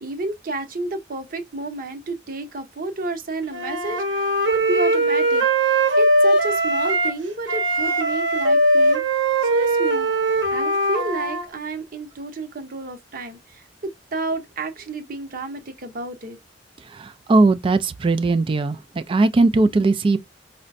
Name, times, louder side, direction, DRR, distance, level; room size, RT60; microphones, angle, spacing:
voice 1, 0.0-5.4 6.0-10.1 10.5-16.4, right 2 dB, 50° right, 0.8 m, -31 dB
Wind instrument woodwind instrument, 3.5-7.2 7.5-11.4, right 1 dB, 80° right, 0.9 m, -20 dB
voice 2, 17.0-18.8 19.1-20.2, right 3 dB, 30° right, 0.3 m, -18 dB
4.9 x 2.1 x 2.5 m
head